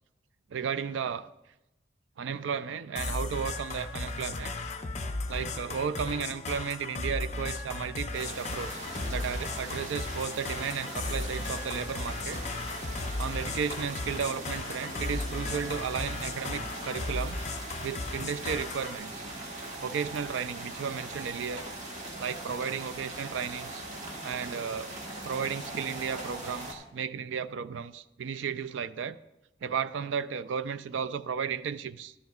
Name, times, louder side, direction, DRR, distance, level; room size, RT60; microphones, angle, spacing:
voice 1, 0.5-1.3 2.2-4.5 5.3-8.8 9.1-12.4 13.2-17.4 17.8-19.3 19.8-21.7 22.2-23.8 24.2-24.9 25.2-29.2 29.6-32.1, right 7 dB, 75° right, 13 dB, 0.4 m, -34 dB
sound 1, 3.0-19.0, left 3 dB, 35° left, 0.6 m, -36 dB
sound 2, 8.1-26.7, right 1 dB, 40° right, 1.4 m, -40 dB
13.0 x 10.5 x 2.4 m, 0.96 s
head